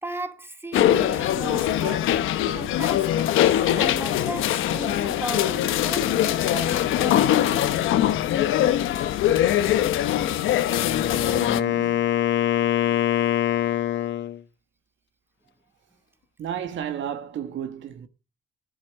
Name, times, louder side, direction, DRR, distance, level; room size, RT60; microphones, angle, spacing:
voice 1, 0.0-2.2 2.5-8.2 11.4-11.5, right 2 dB, 10° right, 2.1 m, -36 dB
sound 1, 0.7-11.6, left 12 dB, 85° left, 1.1 m, -22 dB
Wind instrument woodwind instrument, 10.5-14.4, left 12 dB, 65° left, 1.3 m, -24 dB
voice 2, 10.9-12.1 16.4-18.1, right 9 dB, 75° right, 1.6 m, -33 dB
15.5 x 11.0 x 5.8 m
cardioid pair, 90°, 20 cm